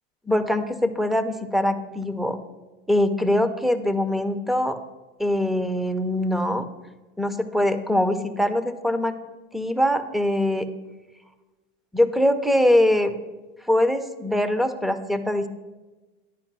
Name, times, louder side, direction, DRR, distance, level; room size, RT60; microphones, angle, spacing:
voice 1, 0.3-2.4 2.9-4.8 5.2-6.7 7.2-9.1 9.5-10.7 11.9-13.1 13.6-15.5, left 1 dB, ahead, 10 dB, 0.5 m, -22 dB
11.0 x 5.1 x 6.0 m, 1.2 s
supercardioid pair, 140°, 29 cm